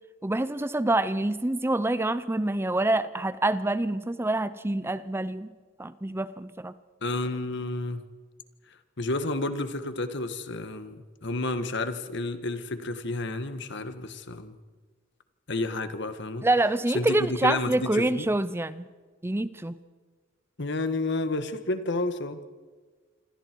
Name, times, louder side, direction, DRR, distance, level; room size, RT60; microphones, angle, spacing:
voice 1, 0.2-5.5 5.8-6.7 16.4-18.9 19.2-19.8, right 2 dB, 10° right, 14 dB, 0.6 m, -26 dB
voice 2, 7.0-8.0 8.7-14.6 15.5-16.5 16.9-18.3 20.6-22.4, left 2 dB, 65° left, 9 dB, 1.7 m, -31 dB
27.5 x 25.5 x 4.7 m, 1.4 s
head